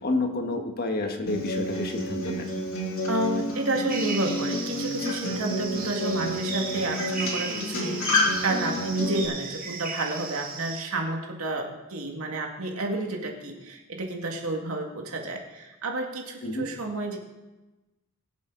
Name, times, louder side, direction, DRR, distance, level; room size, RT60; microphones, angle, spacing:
voice 1, 0.0-2.5 16.4-16.7, left 2 dB, 45° left, 4 dB, 1.6 m, -29 dB
Acoustic guitar, 1.3-9.3, left 1 dB, 70° left, 3.4 m, -29 dB
voice 2, 3.1-17.2, right 2 dB, 90° right, 2 dB, 2.1 m, -30 dB
sound 1, 3.9-10.8, right 5 dB, 45° right, 1.9 m, -36 dB
22.5 x 7.6 x 4.0 m, 1.1 s
head